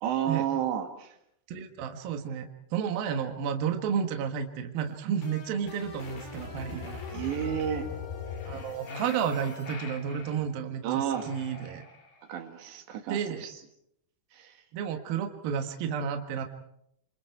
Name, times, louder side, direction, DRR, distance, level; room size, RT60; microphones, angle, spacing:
voice 1, 0.0-1.1 7.1-7.9 10.8-11.3 12.3-13.5 14.3-14.6, right 9 dB, 85° right, 5 dB, 4.3 m, -31 dB
voice 2, 1.5-2.5 2.7-7.0 8.5-11.8 13.1-13.5 14.7-16.5, right 7 dB, 65° right, 4 dB, 3.2 m, -31 dB
sound 1, 4.8-9.7, left 6 dB, 75° left, 7.0 m, -41 dB
sound 2, 8.2-10.4 11.1-12.3, left 4 dB, 50° left, 3.9 m, -46 dB
28.5 x 26.0 x 4.8 m, 0.75 s
omnidirectional pair, 4.9 m